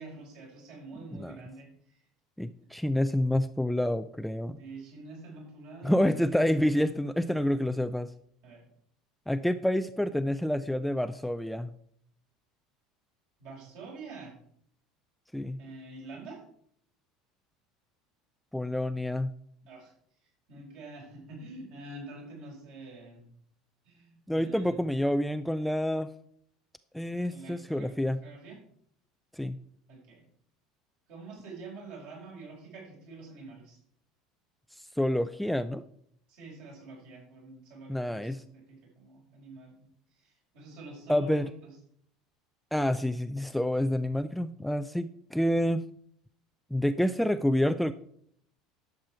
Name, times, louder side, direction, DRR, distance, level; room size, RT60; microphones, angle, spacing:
voice 1, 0.0-2.0 4.6-6.1 8.4-8.6 13.4-14.3 15.6-16.4 19.7-19.9 20.5-23.2 23.8-24.8 27.3-28.6 29.9-30.3 31.1-33.8 36.3-39.8 40.1-41.7, right 3 dB, 55° right, -2 dB, 4.8 m, -46 dB
voice 2, 2.4-4.6 5.8-8.1 9.3-11.7 15.3-15.6 18.5-19.3 24.3-26.1 26.9-28.2 29.3-29.6 35.0-35.8 37.9-38.4 41.1-41.5 42.7-45.8 46.7-47.9, left 1 dB, ahead, 12 dB, 0.4 m, -28 dB
11.5 x 7.5 x 4.5 m, 0.66 s
figure-of-eight pair, 70°, 2 cm